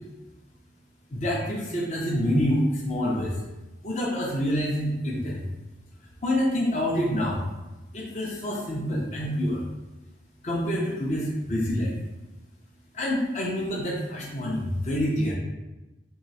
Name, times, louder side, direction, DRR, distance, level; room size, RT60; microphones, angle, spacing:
voice 1, 1.1-3.3 3.8-5.5 6.2-7.4 7.9-9.6 10.4-12.0 12.9-15.3, equal, 35° left, -5 dB, 0.6 m, -27 dB
3.2 x 2.8 x 4.0 m, 1.0 s
head